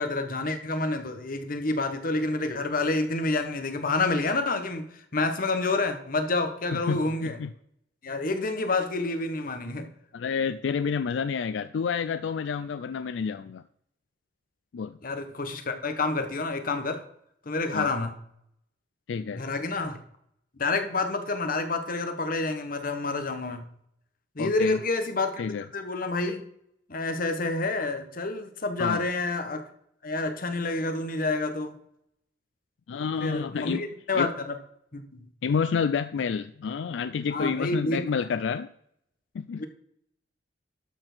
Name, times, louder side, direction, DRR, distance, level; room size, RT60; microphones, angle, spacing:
voice 1, 0.0-7.4 8.0-9.9 15.0-17.0 17.5-18.1 19.3-20.0 20.6-23.6 24.3-25.4 25.7-26.5 26.9-29.6 30.0-31.8 33.2-34.5 34.9-35.2 37.3-38.0 39.6-39.7, left 3 dB, 50° left, 7 dB, 1.2 m, -28 dB
voice 2, 6.9-7.5 10.1-13.6 14.7-15.0 17.7-17.9 19.1-19.4 24.4-24.8 25.4-25.6 28.8-29.0 32.9-33.8 34.2-34.3 35.4-38.7 39.3-39.6, left 6 dB, 85° left, 12 dB, 0.4 m, -29 dB
12.0 x 4.4 x 6.1 m, 0.72 s
head